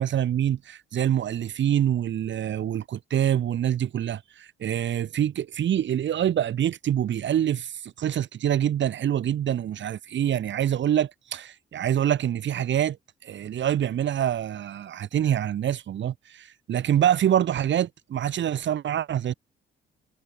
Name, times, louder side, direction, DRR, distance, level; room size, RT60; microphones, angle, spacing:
voice 1, 0.0-13.0 13.2-19.3, right 10 dB, 65° right, 7.1 m, -25 dB
cardioid pair, 90°, 20 cm